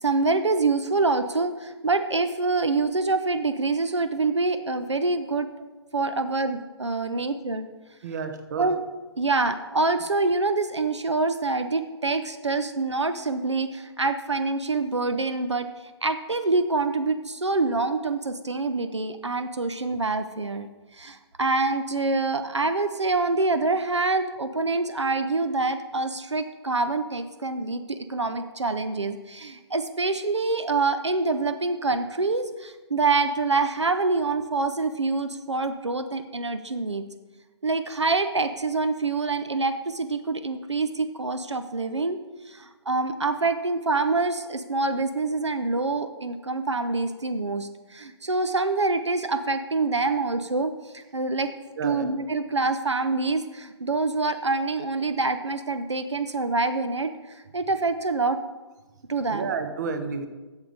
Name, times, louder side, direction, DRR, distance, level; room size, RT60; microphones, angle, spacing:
voice 1, 0.0-5.5 5.9-7.7 8.6-8.8 9.2-15.7 16.0-20.7 20.9-37.0 37.6-42.2 42.5-51.5 51.8-58.4 59.1-59.5, right 3 dB, 80° right, 10 dB, 0.6 m, -26 dB
voice 2, 8.0-8.7 51.8-52.1 59.3-60.3, right 5 dB, 40° right, 8 dB, 0.8 m, -30 dB
8.2 x 7.1 x 4.9 m, 1.2 s
figure-of-eight pair, 130°, 15 cm